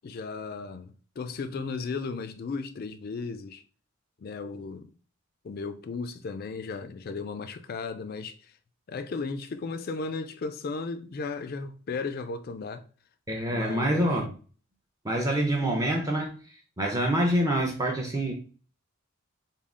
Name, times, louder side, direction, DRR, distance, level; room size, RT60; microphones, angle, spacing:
voice 1, 0.0-3.6 4.2-4.9 5.4-8.5 8.9-12.8 13.5-14.1, left 4 dB, 45° left, 0.3 m, -35 dB
voice 2, 13.3-14.3 15.0-18.3, right 1 dB, 15° right, 0.5 m, -26 dB
3.5 x 2.3 x 3.6 m
head